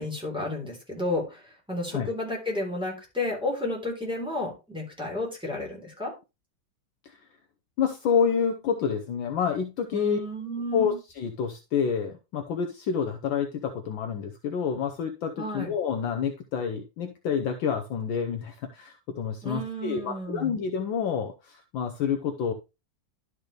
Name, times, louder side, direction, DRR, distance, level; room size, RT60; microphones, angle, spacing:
voice 1, 0.0-6.1 9.9-11.0 15.4-15.7 19.4-20.5, left 1 dB, ahead, 3.3 m, -32 dB
voice 2, 7.8-10.2 10.7-22.5, left 7 dB, 70° left, 1.4 m, -28 dB
12.0 x 5.3 x 3.2 m
omnidirectional pair, 2.4 m